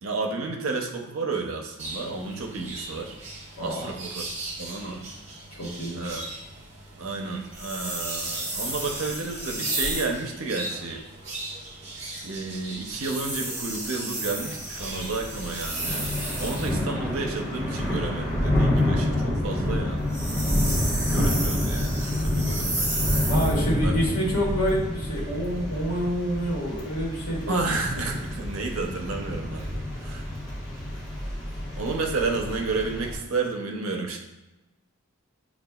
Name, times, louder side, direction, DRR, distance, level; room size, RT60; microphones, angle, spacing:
voice 1, 0.0-3.1 3.6-4.3 4.6-5.0 5.9-6.3 7.0-11.0 12.2-20.0 21.1-23.0 23.8-24.2 27.5-30.3 31.7-34.2, right 3 dB, 70° right, 2 dB, 0.6 m, -31 dB
sound 1, 1.8-16.6, right 2 dB, 30° right, 0.9 m, -40 dB
voice 2, 3.6-3.9 5.5-6.1 23.3-27.6, equal, 75° left, -4 dB, 1.1 m, -27 dB
sound 2, 7.5-10.2 12.9-16.8 20.0-23.6, right 1 dB, 15° right, 1.4 m, -32 dB
Thunder / Rain, 14.8-33.2, left 1 dB, 15° left, 1.0 m, -28 dB
6.5 x 2.3 x 2.3 m, 1.0 s
head